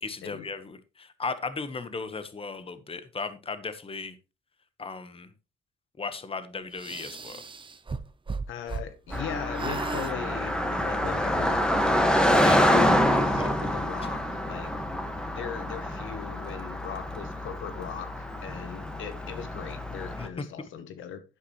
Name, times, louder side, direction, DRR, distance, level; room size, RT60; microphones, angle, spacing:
voice 1, 0.0-4.1 4.8-5.3 6.0-7.4 12.4-12.6 13.1-13.5 20.2-20.3, left 4 dB, 30° left, 1.4 m, -36 dB
sound 1, 6.8-9.3 9.5-10.2, right 4 dB, 25° right, 0.9 m, -35 dB
voice 2, 8.5-14.7 15.3-21.2, left 8 dB, 80° left, 1.3 m, -39 dB
Car passing by, 9.1-20.3, equal, 5° left, 1.7 m, -26 dB
11.0 x 8.9 x 3.2 m
cardioid pair, 90°, 20 cm